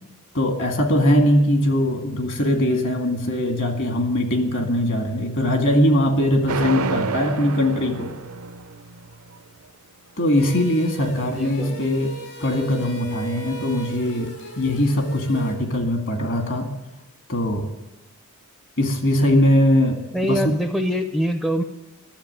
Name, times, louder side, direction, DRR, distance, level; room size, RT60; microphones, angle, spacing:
voice 1, 0.3-8.1 10.2-12.1 12.4-14.3 14.6-16.7 17.3-17.6 18.8-20.5, left 1 dB, 60° left, 5 dB, 2.0 m, -21 dB
sound 1, 6.5-9.4, right 4 dB, 65° right, 0.7 m, -29 dB
sound 2, 10.4-15.5, right 4 dB, 75° left, 4.3 m, -37 dB
voice 2, 11.2-11.8 20.1-21.6, equal, ahead, 7 dB, 0.6 m, -24 dB
11.5 x 7.3 x 9.9 m, 1.0 s
head